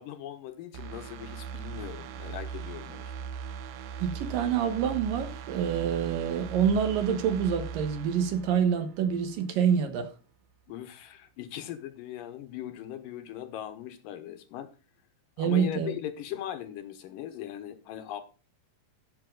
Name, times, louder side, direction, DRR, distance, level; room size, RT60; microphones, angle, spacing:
voice 1, 0.0-3.3 10.7-14.7 15.4-18.2, left 11 dB, 75° left, 2.5 m, -39 dB
sound 1, 0.7-9.4 9.8-9.9, right 7 dB, 90° right, 2.8 m, -40 dB
voice 2, 4.0-10.1 15.4-15.9, right 7 dB, 75° right, 2.9 m, -27 dB
14.0 x 6.2 x 3.8 m
omnidirectional pair, 4.2 m